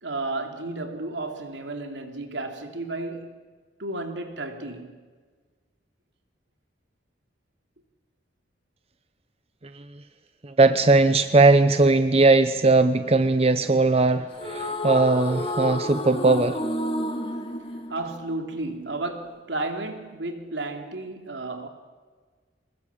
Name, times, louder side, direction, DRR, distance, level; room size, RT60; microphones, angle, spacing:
voice 1, 0.0-3.4 3.8-5.0 17.9-21.7, right 2 dB, 80° right, 3.0 m, -32 dB
voice 2, 9.6-10.0 10.4-16.6, right 3 dB, 35° right, 0.8 m, -19 dB
sound 1, 14.3-18.7, left 1 dB, 30° left, 2.5 m, -30 dB
25.0 x 21.0 x 8.6 m
head